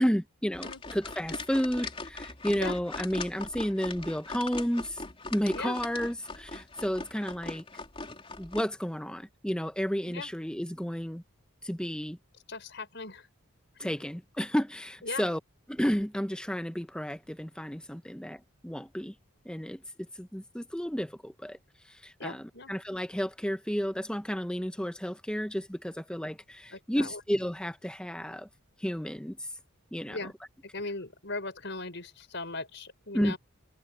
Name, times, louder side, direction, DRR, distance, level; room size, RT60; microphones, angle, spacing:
voice 1, 0.0-5.0 5.3-7.6 8.4-11.2 11.6-12.2 13.8-15.4 15.7-19.1 19.4-19.8 20.1-21.6 21.9-28.5 28.8-29.5 29.9-30.2 33.1-33.4, equal, 5° left, 1.0 m, -32 dB
sound 1, 0.5-8.6, left 3 dB, 25° left, 4.0 m, -40 dB
voice 2, 12.5-13.3 13.8-13.9 15.0-15.3 22.2-22.7 26.7-27.2 30.1-30.3 30.7-33.4, left 3 dB, 55° left, 5.8 m, -38 dB
head